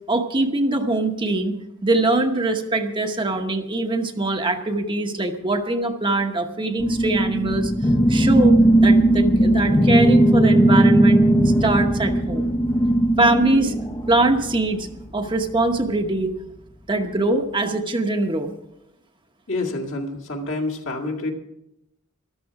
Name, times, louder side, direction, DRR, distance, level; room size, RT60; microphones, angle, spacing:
voice 1, 0.1-7.7 8.1-8.5 8.8-12.5 13.2-13.7 14.1-14.9 15.1-16.3 16.9-18.5, right 2 dB, 25° right, 4 dB, 0.9 m, -22 dB
sound 1, 6.8-14.6, right 1 dB, 15° left, 0.8 m, -17 dB
voice 2, 19.5-21.3, left 2 dB, 60° left, 2 dB, 2.1 m, -27 dB
13.5 x 13.0 x 4.8 m, 0.84 s
head